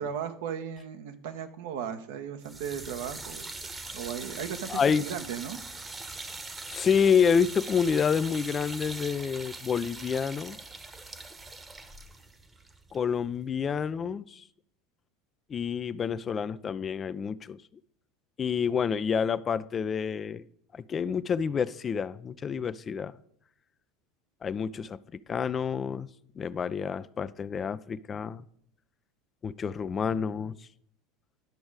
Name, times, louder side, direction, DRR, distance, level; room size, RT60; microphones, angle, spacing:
voice 1, 0.0-3.5 3.9-5.6, right 8 dB, 70° right, 8 dB, 0.9 m, -36 dB
sound 1, 2.4-13.5, right 3 dB, 20° right, 1.0 m, -42 dB
voice 2, 4.7-5.0 6.7-10.6 12.9-14.4 15.5-17.6 18.4-20.5 20.7-23.1 24.4-25.0 25.3-26.1 26.4-28.4 29.4-30.6, left 6 dB, 30° left, 16 dB, 0.4 m, -28 dB
10.5 x 6.2 x 4.7 m, 0.70 s
hypercardioid pair, 80°, 0 cm